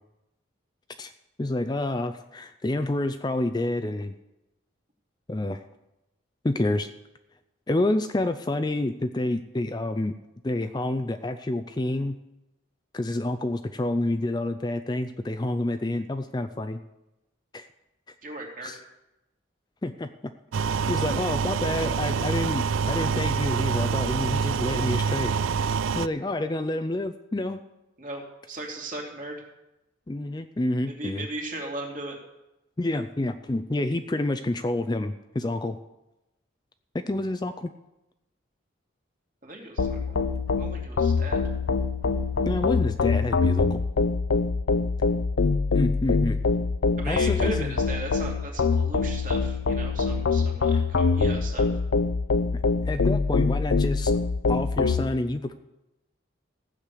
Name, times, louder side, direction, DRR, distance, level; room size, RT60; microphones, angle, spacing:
voice 1, 1.4-4.1 5.3-5.6 6.4-6.9 7.7-10.2 10.4-12.2 12.9-16.8 17.5-17.7 18.6-18.8 19.8-20.1 20.6-25.3 25.9-27.6 30.1-31.3 32.8-35.8 36.9-37.7 42.4-43.8 45.7-46.4 47.1-47.7 50.7-50.8 52.5-54.1 54.5-55.5, left 1 dB, 20° left, 8 dB, 0.4 m, -28 dB
voice 2, 18.2-18.7 28.0-29.4 31.0-32.2 39.4-40.2 40.6-41.4 47.0-51.7, right 2 dB, 40° right, 0 dB, 2.6 m, -37 dB
sound 1, 20.5-26.1, right 6 dB, 85° right, 0.4 m, -26 dB
sound 2, 39.8-55.0, left 4 dB, 85° left, 0.6 m, -24 dB
15.5 x 6.5 x 8.4 m, 0.95 s
head